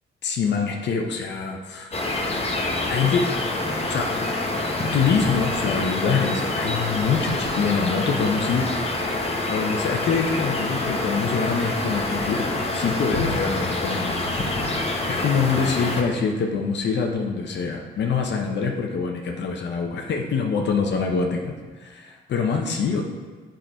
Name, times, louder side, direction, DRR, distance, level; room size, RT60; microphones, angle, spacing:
voice 1, 0.2-1.9 2.9-3.3 3.9-4.1 4.9-14.8 15.1-23.0, left 5 dB, 60° left, 2 dB, 0.9 m, -25 dB
sound 1, 1.9-16.0, left 2 dB, 30° left, 1.2 m, -26 dB
8.1 x 5.2 x 4.4 m, 1.4 s
cardioid pair, 90°, 20 cm